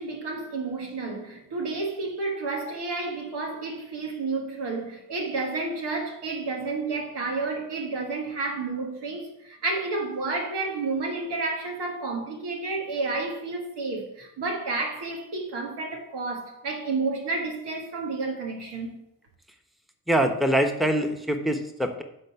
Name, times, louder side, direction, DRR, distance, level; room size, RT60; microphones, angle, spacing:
voice 1, 0.0-19.0, right 3 dB, 85° right, 1.6 m, -31 dB
voice 2, 20.1-22.0, right 1 dB, ahead, 1.1 m, -24 dB
7.8 x 4.0 x 6.9 m
supercardioid pair, 40°, 40 cm